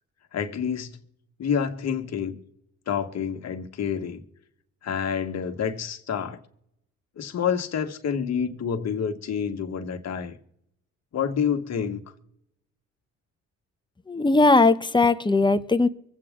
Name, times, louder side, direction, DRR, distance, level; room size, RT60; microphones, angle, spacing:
voice 1, 0.3-1.0 1.4-2.4 2.9-4.2 4.8-6.4 7.2-10.4 11.1-12.0, left 7 dB, 60° left, 1.7 m, -28 dB
voice 2, 14.1-15.9, left 3 dB, 15° left, 0.9 m, -19 dB
24.5 x 8.4 x 3.7 m
cardioid pair, 90°, 30 cm